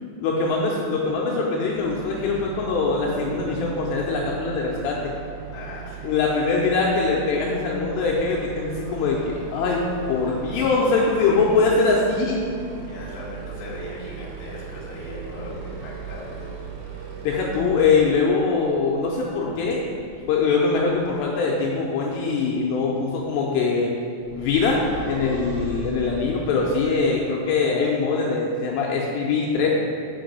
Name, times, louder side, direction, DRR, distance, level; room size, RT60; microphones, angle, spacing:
voice 1, 0.2-5.1 6.0-9.8 10.1-12.4 17.2-19.9 20.3-23.9 24.3-29.7, left 4 dB, 80° left, -2 dB, 2.7 m, -22 dB
sound 1, 1.7-18.1, right 8 dB, 85° right, 2.4 m, -38 dB
voice 2, 5.5-6.5 11.1-11.6 12.9-16.5, left 1 dB, 60° left, -5 dB, 2.1 m, -38 dB
sound 2, 7.9-12.0 15.1-21.4 24.2-27.1, equal, 60° right, 1.3 m, -41 dB
5.4 x 5.1 x 5.2 m, 2.4 s
omnidirectional pair, 5.1 m